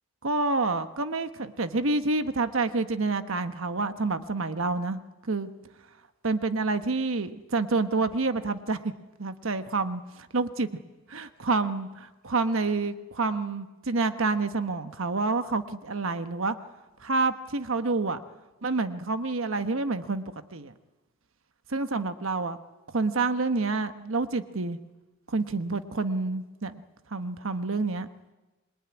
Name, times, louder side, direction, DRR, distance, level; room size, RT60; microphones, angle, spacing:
voice 1, 0.2-5.5 6.2-8.9 9.2-10.7 11.1-16.6 17.0-18.2 18.6-20.2 20.5-20.7 21.7-22.6 22.9-24.8 25.3-26.8 27.1-28.1, right 3 dB, 80° right, 9 dB, 1.2 m, -28 dB
26.5 x 21.5 x 9.8 m, 1.1 s
head